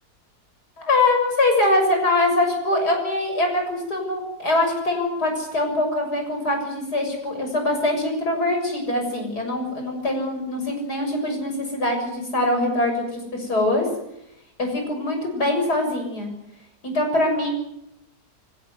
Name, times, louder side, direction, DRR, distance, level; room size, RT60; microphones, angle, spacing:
voice 1, 0.8-13.9 14.6-16.3 16.8-17.5, left 2 dB, 85° left, 3 dB, 7.5 m, -23 dB
25.0 x 16.5 x 9.6 m, 0.81 s
omnidirectional pair, 1.7 m